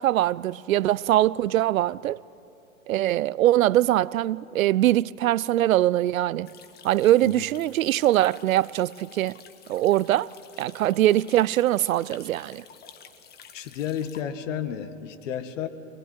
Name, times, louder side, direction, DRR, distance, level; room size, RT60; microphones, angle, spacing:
voice 1, 0.0-2.2 2.9-6.5 6.8-9.4 9.7-10.3 10.6-12.6, right 14 dB, 70° right, 0.6 m, -22 dB
sound 1, 6.5-14.2, left 8 dB, 20° left, 1.7 m, -51 dB
voice 2, 13.5-15.7, left 9 dB, 60° left, 2.0 m, -32 dB
24.0 x 21.5 x 9.6 m
hypercardioid pair, 120°, 43 cm